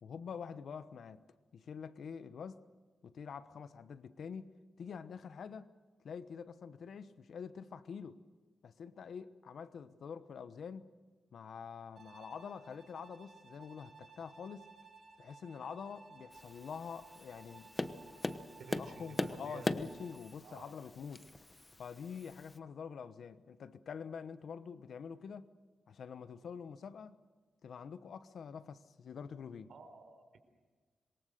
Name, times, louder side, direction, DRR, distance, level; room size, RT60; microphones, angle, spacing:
voice 1, 0.0-1.2 1.5-2.7 3.0-5.7 6.0-8.2 8.6-10.9 11.3-14.7 15.2-17.7 18.8-21.3 21.8-25.5 25.9-27.2 27.6-29.7, left 6 dB, 75° left, 1.1 m, -46 dB
Bowed string instrument, 12.0-20.3, right 4 dB, 50° right, 7.4 m, -58 dB
Tap, 16.3-22.6, left 2 dB, 25° left, 1.1 m, -41 dB
voice 2, 18.6-19.7 20.4-20.7 29.7-30.4, right 5 dB, 75° right, 4.4 m, -52 dB
26.5 x 22.5 x 6.8 m
cardioid pair, 95°, 0 cm